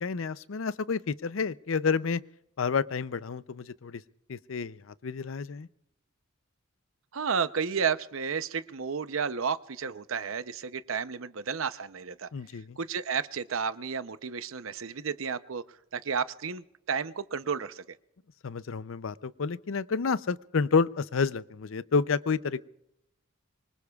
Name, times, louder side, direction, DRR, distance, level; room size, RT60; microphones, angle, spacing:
voice 1, 0.0-2.2 2.6-4.0 4.3-5.7 12.3-12.8 18.4-22.6, left 5 dB, 75° left, 16 dB, 0.6 m, -29 dB
voice 2, 7.1-12.3 12.8-15.6 15.9-17.8, right 6 dB, 80° right, 13 dB, 0.7 m, -32 dB
25.0 x 24.5 x 2.4 m, 0.83 s
head